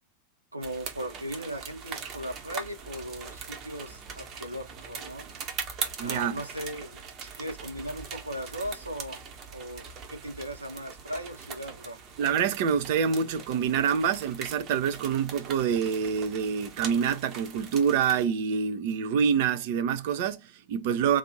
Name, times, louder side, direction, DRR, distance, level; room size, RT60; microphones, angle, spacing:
voice 1, 0.5-5.2 6.0-9.2 9.5-9.8 10.1-12.0, equal, 85° right, 1.0 m, -38 dB
sound 1, 0.6-18.2, right 6 dB, 35° right, 1.0 m, -41 dB
voice 2, 6.0-6.4 12.2-21.2, right 7 dB, 50° right, 0.6 m, -26 dB
4.0 x 2.6 x 2.9 m
figure-of-eight pair, 90°, 0 cm